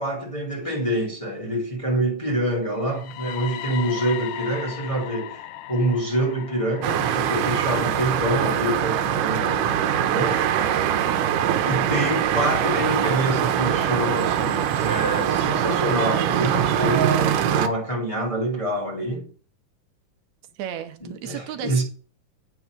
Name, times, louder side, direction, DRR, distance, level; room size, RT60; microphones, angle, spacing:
voice 1, 0.0-10.4 11.6-19.3 21.0-21.8, right 1 dB, 10° left, 1.7 m, -26 dB
sound 1, 2.7-10.6, left 13 dB, 75° left, 1.6 m, -39 dB
sound 2, 6.8-17.7, right 10 dB, 90° right, 2.4 m, -23 dB
voice 2, 10.5-11.2 20.6-21.8, right 10 dB, 75° right, 2.1 m, -35 dB
9.0 x 4.8 x 6.0 m
omnidirectional pair, 3.6 m